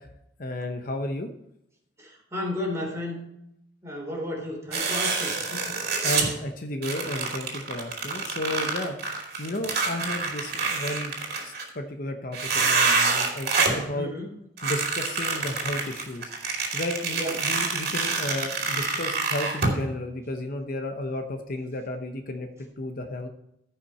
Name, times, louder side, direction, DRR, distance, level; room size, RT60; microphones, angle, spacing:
voice 1, 0.4-1.3 6.0-11.1 11.4-14.1 14.6-16.3 16.7-22.5 22.8-23.3, left 1 dB, 50° left, 5 dB, 0.9 m, -33 dB
voice 2, 2.0-3.2 3.8-5.9 13.9-14.4 17.1-17.5, left 1 dB, 15° right, -1 dB, 3.5 m, -33 dB
sound 1, 4.7-6.3 6.8-11.7 12.3-13.8 14.6-19.8, right 4 dB, 55° right, 2.6 m, -27 dB
15.0 x 5.7 x 4.3 m, 0.81 s
head